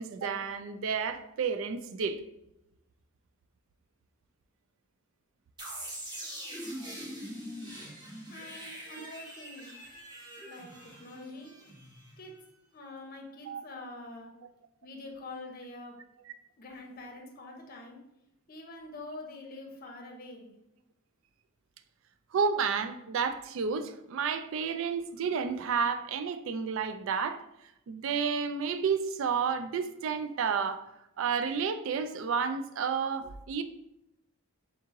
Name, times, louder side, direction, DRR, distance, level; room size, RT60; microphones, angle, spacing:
voice 1, 0.0-2.2 8.9-9.1 13.5-13.6 22.3-27.4 27.9-30.8 31.2-33.6, right 6 dB, 65° right, 10 dB, 0.3 m, -31 dB
sound 1, 5.6-12.4, equal, 20° right, 1.0 m, -43 dB
voice 2, 8.3-9.8 10.4-11.5 12.2-12.3 12.7-14.3 14.8-15.9 16.6-18.0 18.5-20.5, left 2 dB, 45° left, 2 dB, 0.7 m, -45 dB
3.5 x 3.0 x 3.6 m, 0.83 s
head